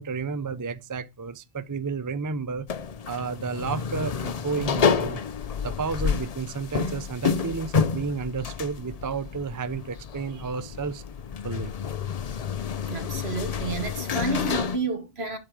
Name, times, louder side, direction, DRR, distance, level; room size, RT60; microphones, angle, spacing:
voice 1, 0.0-2.7 3.1-5.2 5.6-11.0 11.4-11.7, right 5 dB, 30° right, 0.4 m, -31 dB
sound 1, 2.7-14.8, left 6 dB, 45° left, 0.5 m, -29 dB
voice 2, 12.8-15.4, right 3 dB, 65° right, 2.0 m, -30 dB
11.5 x 4.7 x 4.7 m
omnidirectional pair, 1.1 m